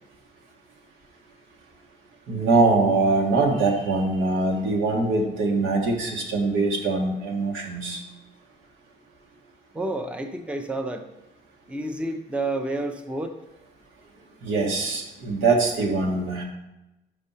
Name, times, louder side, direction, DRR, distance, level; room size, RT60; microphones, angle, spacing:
voice 1, 2.3-8.0 14.4-16.4, right 3 dB, 80° right, 0 dB, 1.5 m, -23 dB
voice 2, 9.7-11.0 11.7-13.3, right 2 dB, 5° right, 5 dB, 0.6 m, -29 dB
5.5 x 5.2 x 5.6 m, 0.96 s
cardioid pair, 90°, 20 cm